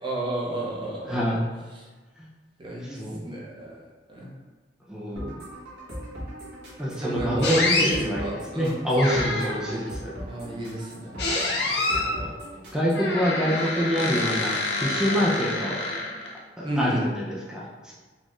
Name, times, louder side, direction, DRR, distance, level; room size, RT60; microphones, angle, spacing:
voice 1, 0.0-1.2 2.6-3.0 3.2-3.8 4.1-4.3 7.0-8.7 9.7-10.8 16.6-17.0, right 1 dB, 30° right, -4 dB, 0.8 m, -31 dB
voice 2, 1.0-1.4 2.8-3.3 4.9-5.3 6.8-10.1 11.9-12.3 12.7-15.8 16.6-17.9, equal, 5° right, -6 dB, 0.4 m, -26 dB
sound 1, 5.2-13.1, equal, 65° right, 1.3 m, -39 dB
sound 2, 7.4-7.9 9.0-9.7 11.2-12.2 12.9-16.4, left 2 dB, 65° left, 0.6 m, -27 dB
4.1 x 2.3 x 3.0 m, 1.3 s
head